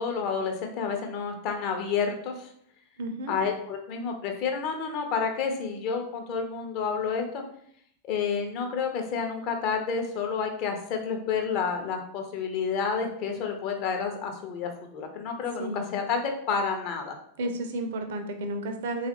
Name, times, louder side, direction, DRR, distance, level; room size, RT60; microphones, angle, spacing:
voice 1, 0.0-2.5 3.3-7.4 8.0-17.2, left 5 dB, 40° left, 3 dB, 0.6 m, -30 dB
voice 2, 3.0-3.3 15.6-15.9 17.4-19.1, right 1 dB, 55° right, 5 dB, 0.5 m, -32 dB
3.6 x 2.4 x 2.8 m, 0.66 s
figure-of-eight pair, 90°, 0 cm